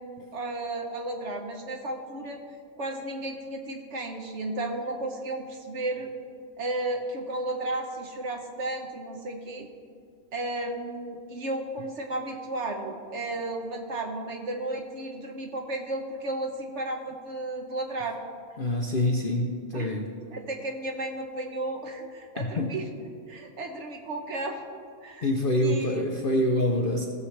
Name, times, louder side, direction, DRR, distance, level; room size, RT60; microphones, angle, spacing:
voice 1, 0.0-2.4 2.8-6.1 6.6-9.7 10.3-18.2 19.7-20.0 20.3-22.8 23.3-24.6 25.0-25.3 25.6-26.0, right 2 dB, 55° right, 2 dB, 1.2 m, -33 dB
voice 2, 18.6-20.1 22.4-22.7 25.2-27.1, left 1 dB, 50° left, 1 dB, 0.7 m, -26 dB
16.5 x 6.9 x 3.3 m, 2.2 s
omnidirectional pair, 1.6 m